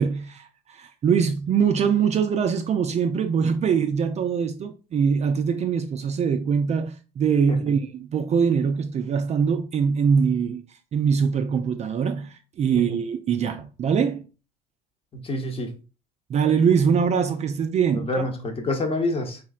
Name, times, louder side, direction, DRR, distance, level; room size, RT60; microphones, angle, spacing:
voice 1, 0.0-10.6 10.9-14.2 16.3-18.1, right 6 dB, 35° right, 0.4 m, -23 dB
voice 2, 15.1-15.7 17.9-19.4, left 2 dB, 30° left, 0.9 m, -27 dB
3.7 x 3.0 x 2.4 m
hypercardioid pair, 70°, 19 cm